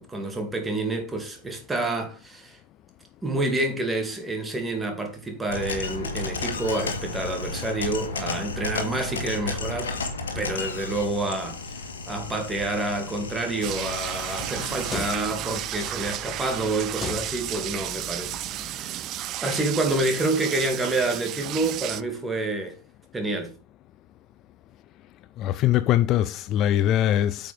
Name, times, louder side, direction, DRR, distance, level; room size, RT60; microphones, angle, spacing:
voice 1, 0.0-2.6 3.2-9.9 10.3-19.1 19.4-22.8 23.1-23.6, right 2 dB, 10° right, 2.4 m, -28 dB
sound 1, 5.5-15.4, left 3 dB, 65° left, 1.9 m, -33 dB
sound 2, 13.6-18.8, left 4 dB, 15° left, 1.2 m, -40 dB
sound 3, 13.6-22.0, right 14 dB, 35° right, 0.5 m, -33 dB
voice 2, 25.4-27.5, left 12 dB, 35° left, 0.4 m, -22 dB
8.9 x 7.1 x 3.5 m
figure-of-eight pair, 90°, 0 cm